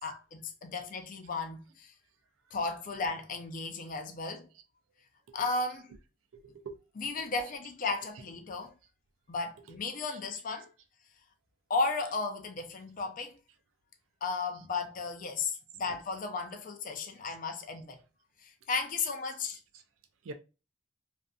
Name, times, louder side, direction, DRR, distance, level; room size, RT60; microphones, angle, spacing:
voice 1, 0.0-1.9 2.5-4.5 5.3-5.9 7.0-8.7 9.3-10.7 11.7-13.4 14.2-18.0 18.4-19.6, left 4 dB, 45° left, 0.4 m, -34 dB
voice 2, 6.4-6.8 7.3-7.6 7.9-8.0 9.6-9.7 10.1-10.2 15.8-16.0 17.3-17.4 19.0-19.1 19.7-19.8 20.2-20.3, right 4 dB, 85° right, 0.4 m, -46 dB
2.5 x 2.5 x 2.2 m
head